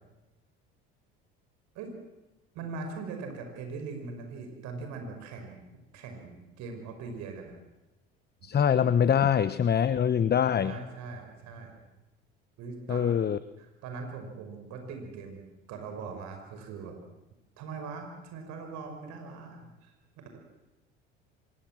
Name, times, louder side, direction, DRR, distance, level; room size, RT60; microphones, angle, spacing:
voice 1, 2.5-5.7 5.9-7.5 10.6-11.8 12.6-13.2 13.6-15.4 15.7-17.0 17.6-19.9, right 4 dB, 65° right, 4 dB, 5.6 m, -41 dB
voice 2, 8.4-10.8 12.9-13.4, left 8 dB, 30° left, 14 dB, 1.0 m, -24 dB
25.5 x 22.5 x 7.7 m, 1.0 s
hypercardioid pair, 65°, 31 cm